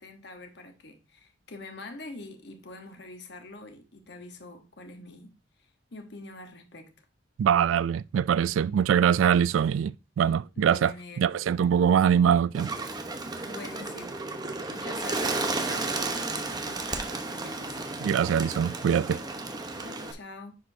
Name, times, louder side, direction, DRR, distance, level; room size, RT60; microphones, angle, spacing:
voice 1, 0.0-5.3 5.6-7.0 10.6-11.3 13.4-14.3 14.7-17.9 19.8-20.6, left 2 dB, 60° left, 1.1 m, -45 dB
voice 2, 7.4-12.7 18.0-19.2, right 8 dB, 80° right, 0.3 m, -23 dB
Bird, 12.5-20.1, right 3 dB, 20° right, 0.9 m, -33 dB
10.0 x 5.1 x 2.7 m
head